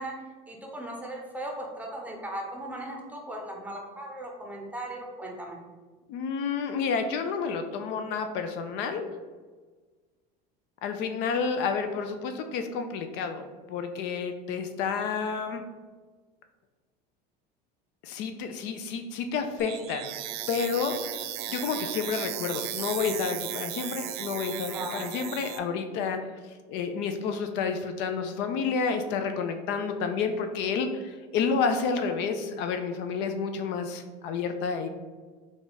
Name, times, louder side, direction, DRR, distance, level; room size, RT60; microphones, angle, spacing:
voice 1, 0.0-5.6 24.7-25.1, right 1 dB, 5° right, 0 dB, 0.8 m, -38 dB
voice 2, 6.1-9.1 10.8-15.6 18.0-20.1 20.5-34.9, left 5 dB, 60° left, 7 dB, 0.4 m, -30 dB
sound 1, 19.6-25.6, right 12 dB, 75° right, 0.4 m, -36 dB
3.6 x 2.4 x 4.0 m, 1.4 s
supercardioid pair, 115°, 20 cm